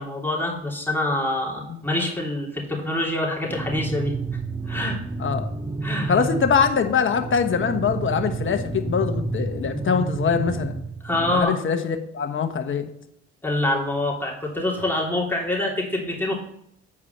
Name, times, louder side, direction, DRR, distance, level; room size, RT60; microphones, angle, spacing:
voice 1, 0.0-4.1 4.7-5.0 5.8-6.2 11.0-11.6 13.4-16.4, left 1 dB, 5° left, -3 dB, 3.0 m, -25 dB
sound 1, 3.5-11.4, right 3 dB, 15° right, 0.4 m, -30 dB
voice 2, 6.1-10.8 11.3-12.8, left 6 dB, 45° left, 6 dB, 1.1 m, -23 dB
8.6 x 4.8 x 5.7 m, 0.74 s
cardioid pair, 80°, 29 cm